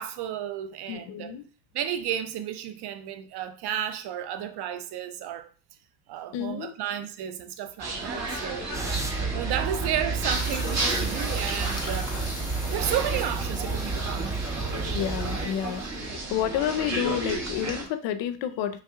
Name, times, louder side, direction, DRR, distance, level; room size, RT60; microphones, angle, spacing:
voice 1, 0.0-1.4 1.7-5.5 6.1-8.7 9.3-12.1 12.7-14.4, right 10 dB, 55° right, 0.5 m, -32 dB
voice 2, 0.9-1.4 6.3-6.7 14.9-15.8 16.3-18.8, left 10 dB, 65° left, 0.5 m, -29 dB
sound 1, 7.8-17.9, right 2 dB, 35° right, 1.1 m, -33 dB
sound 2, 8.7-15.5, right 3 dB, 10° right, 0.3 m, -31 dB
sound 3, 10.3-15.9, left 2 dB, 10° left, 0.9 m, -42 dB
3.3 x 2.6 x 2.4 m
hypercardioid pair, 60°, 48 cm